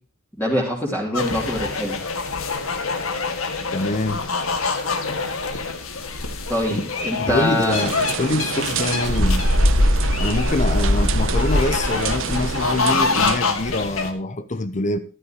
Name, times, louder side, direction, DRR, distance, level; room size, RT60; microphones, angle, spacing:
voice 1, 0.4-2.0 6.5-7.8, left 1 dB, 10° left, 3.4 m, -24 dB
sound 1, 1.1-14.1, left 2 dB, 75° left, 2.2 m, -23 dB
voice 2, 3.7-4.2 6.7-6.8 7.2-9.5 10.2-15.0, left 2 dB, 35° left, 0.8 m, -25 dB
sound 2, 7.7-13.4, right 7 dB, 70° right, 0.7 m, -29 dB
14.5 x 12.5 x 3.0 m
head